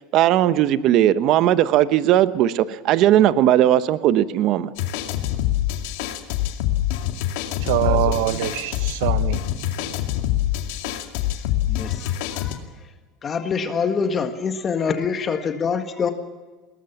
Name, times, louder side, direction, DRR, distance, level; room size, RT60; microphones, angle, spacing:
voice 1, 0.1-4.7, right 12 dB, 55° right, 1.1 m, -18 dB
sound 1, 4.8-12.5, left 13 dB, 75° left, 2.3 m, -25 dB
voice 2, 7.6-10.0, right 14 dB, 80° right, 1.4 m, -24 dB
voice 3, 11.7-12.6 13.2-16.1, left 6 dB, 30° left, 1.7 m, -25 dB
22.0 x 19.0 x 7.3 m
supercardioid pair, 110°, 0 cm